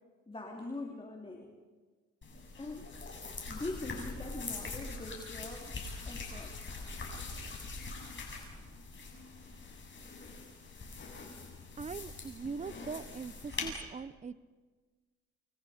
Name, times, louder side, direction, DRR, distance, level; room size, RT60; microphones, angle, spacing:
voice 1, 0.3-1.5 2.6-2.9 3.5-6.6, left 2 dB, 20° left, 0 dB, 3.4 m, -42 dB
sound 1, 2.2-13.7, left 3 dB, 40° left, 7.6 m, -43 dB
voice 2, 11.8-14.3, right 5 dB, 25° right, 16 dB, 0.8 m, -41 dB
29.5 x 29.0 x 5.2 m, 1.4 s
cardioid pair, 90°, 30 cm